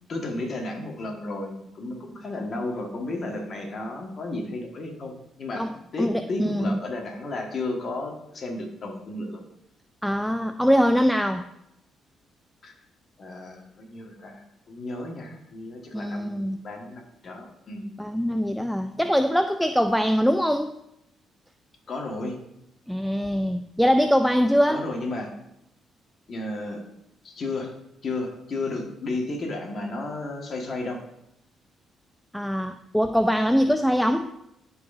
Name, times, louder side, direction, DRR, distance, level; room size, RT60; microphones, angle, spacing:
voice 1, 0.1-9.4 12.6-12.7 13.2-17.9 21.9-22.4 24.7-25.3 26.3-26.8 27.2-27.7 28.0-31.0, left 2 dB, 50° left, 1 dB, 1.7 m, -33 dB
voice 2, 5.5-6.8 10.0-11.5 15.9-16.6 18.0-20.8 22.9-24.9 32.3-34.3, equal, ahead, 8 dB, 0.3 m, -23 dB
12.0 x 4.7 x 2.7 m, 0.83 s
cardioid pair, 90°, 0 cm